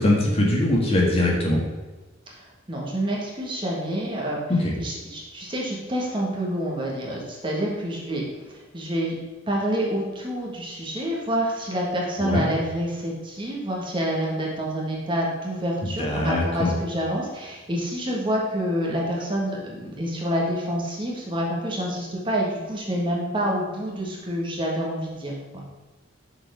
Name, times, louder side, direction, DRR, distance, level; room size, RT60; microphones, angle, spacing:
voice 1, 0.0-1.6 4.6-4.7 12.2-12.4 15.8-16.7, left 1 dB, 30° left, -2 dB, 1.6 m, -22 dB
voice 2, 2.3-4.4 4.8-9.1 9.5-25.7, equal, 25° right, -3 dB, 1.6 m, -28 dB
6.7 x 4.8 x 6.3 m, 1.2 s
head